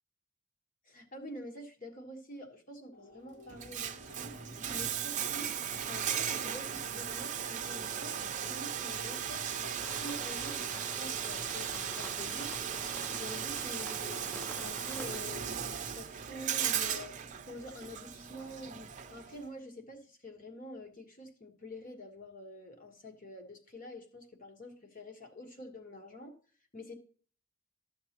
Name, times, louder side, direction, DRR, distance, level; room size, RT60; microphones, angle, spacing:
voice 1, 0.9-5.5 5.8-12.7 12.9-17.1 17.4-26.3 26.7-26.9, left 1 dB, 40° left, 3 dB, 1.4 m, -47 dB
sound 1, 2.9-17.7, left 3 dB, 75° left, 2.9 m, -58 dB
Bathtub (filling or washing), 3.5-19.4, right 8 dB, 40° right, 0.6 m, -37 dB
sound 2, 9.8-15.2, left 1 dB, 10° left, 0.3 m, -48 dB
12.5 x 6.6 x 2.9 m, 0.44 s
head